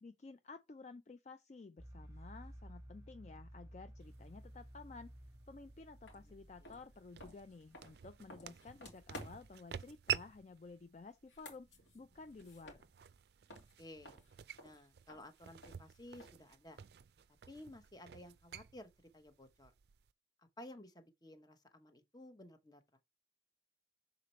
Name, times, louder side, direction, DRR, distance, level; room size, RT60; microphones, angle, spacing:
voice 1, 0.0-5.1 5.5-11.7 11.9-12.9, left 3 dB, 40° left, 0.4 m, -53 dB
sound 1, 1.8-9.6, equal, 15° right, 1.2 m, -56 dB
sound 2, 4.0-20.1, right 10 dB, 60° right, 0.4 m, -49 dB
sound 3, 6.1-6.2 6.6-9.6 11.1-13.2 13.5-16.5, left 1 dB, 80° left, 2.7 m, -55 dB
voice 2, 13.8-14.2 14.6-16.8 17.5-19.7 20.4-23.0, left 1 dB, 20° left, 0.9 m, -55 dB
6.6 x 4.0 x 4.2 m
head